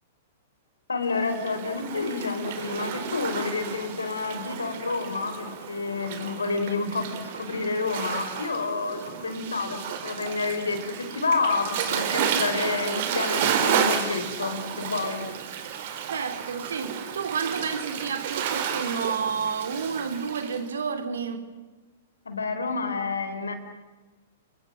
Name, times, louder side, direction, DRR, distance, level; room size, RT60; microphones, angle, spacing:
voice 1, 0.9-15.3 22.2-23.5, left 4 dB, 85° left, 4.5 m, -29 dB
Waves surf, 1.1-20.6, right 8 dB, 55° right, 4.4 m, -32 dB
voice 2, 16.1-21.5, right 6 dB, 75° right, 3.3 m, -30 dB
29.5 x 23.5 x 7.5 m
hypercardioid pair, 110°, 0 cm